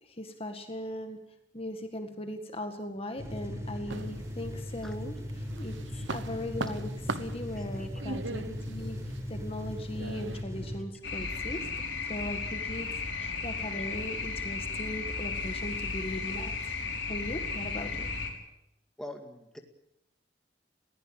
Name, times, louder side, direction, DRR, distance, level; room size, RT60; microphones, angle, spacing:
voice 1, 0.0-1.2 1.5-9.0 9.3-11.7 12.1-16.7 17.1-18.1, left 1 dB, 30° left, 6 dB, 1.8 m, -39 dB
sound 1, 3.2-10.8, left 1 dB, 15° right, 4.4 m, -38 dB
sound 2, 3.9-4.9 5.3-10.4, right 3 dB, 75° right, 1.0 m, -40 dB
voice 2, 7.5-7.9 13.7-13.9 19.0-19.6, left 1 dB, 5° left, 3 dB, 2.2 m, -45 dB
sound 3, 11.0-18.3, left 4 dB, 80° left, 4.8 m, -34 dB
21.0 x 16.0 x 8.9 m, 0.84 s
head